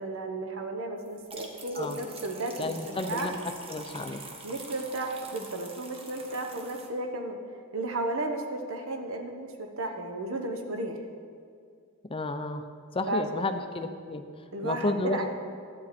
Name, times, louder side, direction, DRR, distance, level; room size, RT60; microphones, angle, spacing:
voice 1, 0.0-2.7 3.1-3.3 4.4-7.4 7.7-11.0 13.1-13.2 14.5-15.3, right 2 dB, 65° right, 4 dB, 1.1 m, -33 dB
sound 1, 1.1-6.9, right 3 dB, 25° right, 1.1 m, -45 dB
voice 2, 2.6-4.2 12.1-12.6 12.9-15.3, left 2 dB, 25° left, 8 dB, 0.6 m, -32 dB
12.5 x 8.6 x 4.3 m, 2.2 s
head